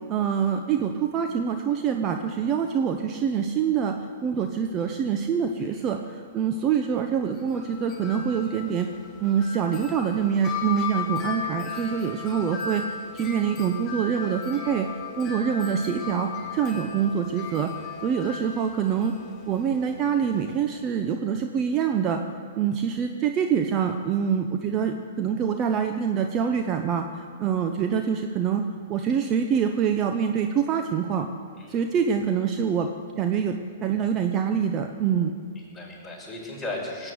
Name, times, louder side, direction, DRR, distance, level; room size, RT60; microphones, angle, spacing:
voice 1, 0.1-8.9 9.2-14.9 15.2-17.7 18.0-19.1 19.5-22.2 22.5-31.3 31.7-32.9 33.2-33.6 33.8-35.3, right 7 dB, 30° right, 5 dB, 0.9 m, -25 dB
Wind chime, 7.3-20.6, left 6 dB, 25° left, 4.7 m, -36 dB
voice 2, 35.5-37.1, left 2 dB, 5° left, -5 dB, 5.6 m, -36 dB
19.5 x 8.9 x 8.0 m, 2.1 s
hypercardioid pair, 110°, 0 cm